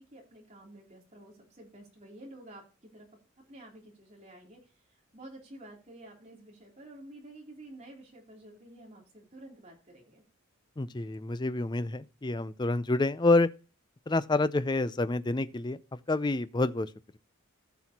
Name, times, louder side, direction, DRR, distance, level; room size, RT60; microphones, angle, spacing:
voice 1, 0.0-3.1 3.5-4.7 5.1-10.2, right 1 dB, 30° right, 3.3 m, -50 dB
voice 2, 10.8-13.5 14.1-15.8 16.1-16.9, left 2 dB, 20° left, 0.4 m, -28 dB
15.0 x 6.2 x 2.9 m
head